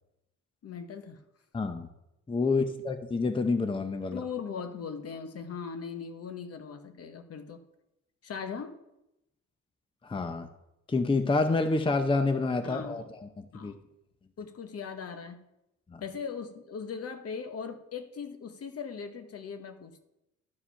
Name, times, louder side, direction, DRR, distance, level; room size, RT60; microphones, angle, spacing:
voice 1, 0.6-1.2 2.6-2.7 4.1-7.6 8.2-8.8 12.6-13.1 13.5-13.8 14.4-15.4 16.0-20.0, left 6 dB, 50° left, 8 dB, 1.0 m, -39 dB
voice 2, 1.5-1.9 2.3-4.2 10.0-10.5 10.9-13.7 15.9-16.0, left 3 dB, 15° left, 8 dB, 0.7 m, -28 dB
11.5 x 4.8 x 5.6 m, 0.88 s
cardioid pair, 90°, 30 cm